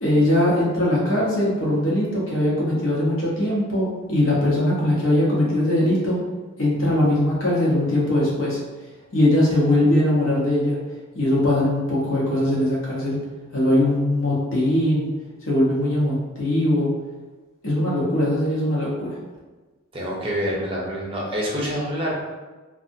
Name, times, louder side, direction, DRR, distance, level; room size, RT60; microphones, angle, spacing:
voice 1, 0.0-6.2 6.6-8.6 9.1-10.8 11.1-13.2 13.5-15.1 15.5-16.9 17.6-19.1, left 1 dB, 70° left, -6 dB, 1.0 m, -21 dB
voice 2, 19.9-22.1, equal, 25° right, -4 dB, 0.6 m, -26 dB
2.7 x 2.4 x 2.6 m, 1.2 s
head